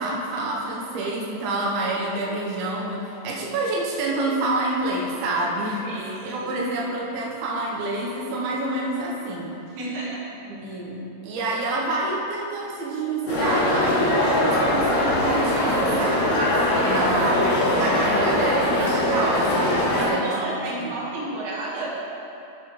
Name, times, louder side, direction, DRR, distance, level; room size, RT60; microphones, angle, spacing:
voice 1, 0.0-9.5 10.5-16.4 16.8-21.0, right 2 dB, 90° right, -3 dB, 2.1 m, -28 dB
voice 2, 5.8-6.5 9.8-10.3 16.6-17.1 19.9-21.9, right 2 dB, 65° right, -6 dB, 2.9 m, -32 dB
sound 1, 13.3-20.1, left 1 dB, 50° left, 2.3 m, -21 dB
12.5 x 6.5 x 3.1 m, 2.8 s
omnidirectional pair, 5.9 m